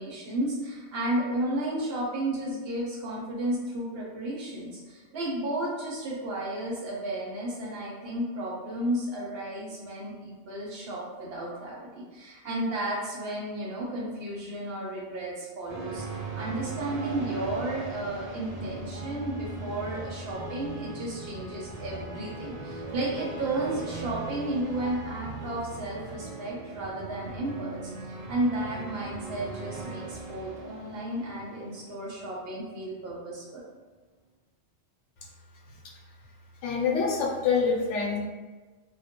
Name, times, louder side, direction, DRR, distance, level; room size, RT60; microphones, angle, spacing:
voice 1, 0.0-16.1 16.4-33.6, right 1 dB, 65° right, -4 dB, 0.7 m, -33 dB
sound 1, 15.7-32.5, right 3 dB, 85° right, 0.3 m, -38 dB
voice 2, 36.6-38.2, left 5 dB, 80° left, -2 dB, 0.9 m, -26 dB
2.2 x 2.1 x 2.8 m, 1.3 s
omnidirectional pair, 1.2 m